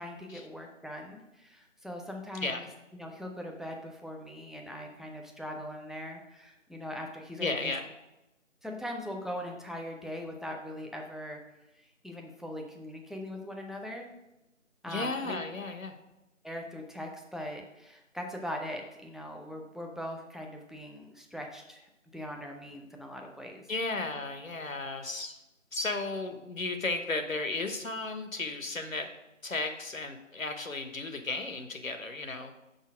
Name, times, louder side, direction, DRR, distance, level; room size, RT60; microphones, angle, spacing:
voice 1, 0.0-2.6 2.9-7.7 8.6-11.4 11.7-14.1 14.8-15.4 16.4-23.7, left 1 dB, ahead, 1 dB, 0.4 m, -41 dB
voice 2, 7.4-7.8 14.9-15.9 23.7-25.3 25.7-29.1 29.4-32.5, left 3 dB, 85° left, 6 dB, 1.1 m, -34 dB
5.5 x 4.0 x 6.0 m, 0.95 s
figure-of-eight pair, 175°, 39 cm